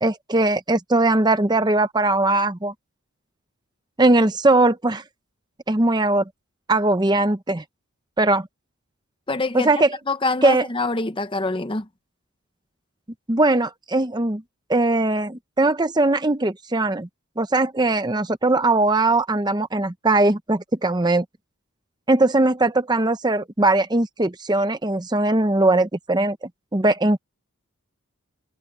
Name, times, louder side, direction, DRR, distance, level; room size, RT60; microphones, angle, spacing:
voice 1, 0.0-2.7 4.0-5.0 5.7-6.2 6.7-7.6 8.2-8.5 9.5-10.0 10.4-10.7 13.3-14.4 14.7-17.1 17.4-21.2 22.1-27.2, right 2 dB, 20° right, 0.7 m, -20 dB
voice 2, 9.3-9.7 10.1-11.9, left 3 dB, 20° left, 0.8 m, -25 dB
head